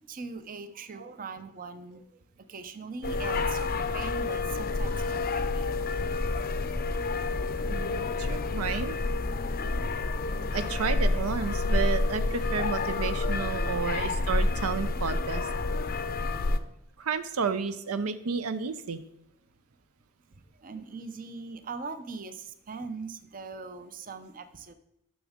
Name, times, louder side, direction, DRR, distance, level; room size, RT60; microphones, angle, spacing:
voice 1, 0.1-2.0 2.5-5.7 13.7-13.9 20.6-24.7, right 4 dB, 40° right, 10 dB, 0.6 m, -41 dB
sound 1, 3.0-16.6, left 3 dB, 45° left, 0.5 m, -29 dB
voice 2, 7.7-9.0 10.5-15.5 17.0-19.0, right 6 dB, 80° right, 11 dB, 0.5 m, -31 dB
10.5 x 6.3 x 3.6 m, 0.84 s
head